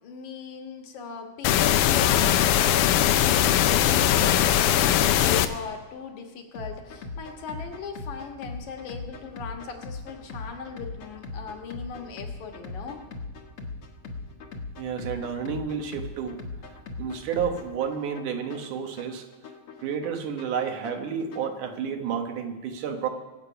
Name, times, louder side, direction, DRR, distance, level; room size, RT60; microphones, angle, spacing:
voice 1, 0.0-13.0, left 6 dB, 70° left, 3 dB, 2.9 m, -38 dB
sound 1, 1.4-5.5, left 11 dB, 85° left, 2.3 m, -20 dB
sound 2, 6.5-21.6, left 3 dB, 55° left, 1.8 m, -40 dB
voice 2, 14.8-16.4 17.0-19.3 19.8-23.1, right 7 dB, 80° right, 5 dB, 2.8 m, -30 dB
24.0 x 8.1 x 5.7 m, 1.2 s
omnidirectional pair, 3.6 m